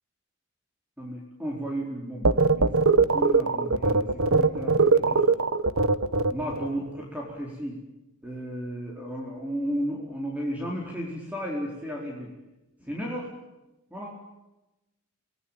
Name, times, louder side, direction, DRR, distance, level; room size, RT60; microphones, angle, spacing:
voice 1, 1.0-2.7 2.9-5.4 6.3-7.8 8.2-12.3 12.8-13.3 13.9-14.1, equal, 5° right, -2 dB, 4.4 m, -34 dB
sound 1, 2.2-6.7, right 4 dB, 70° right, 1.3 m, -21 dB
27.5 x 20.0 x 9.0 m, 1.0 s
head